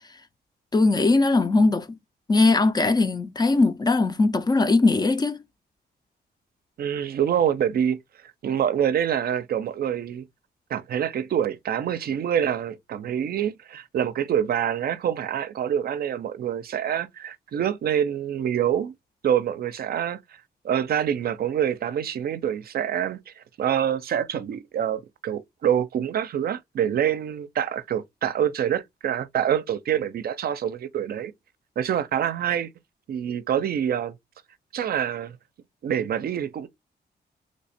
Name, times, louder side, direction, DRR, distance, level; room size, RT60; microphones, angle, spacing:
voice 1, 0.7-1.9 2.3-5.4, left 3 dB, 25° left, 0.4 m, -20 dB
voice 2, 6.8-8.0 8.4-10.3 10.7-18.9 19.2-20.2 20.6-31.3 31.8-32.7 33.1-34.2 34.7-35.4 35.8-36.7, right 9 dB, 60° right, 0.5 m, -26 dB
3.1 x 2.1 x 4.1 m
cardioid pair, 125°, 17 cm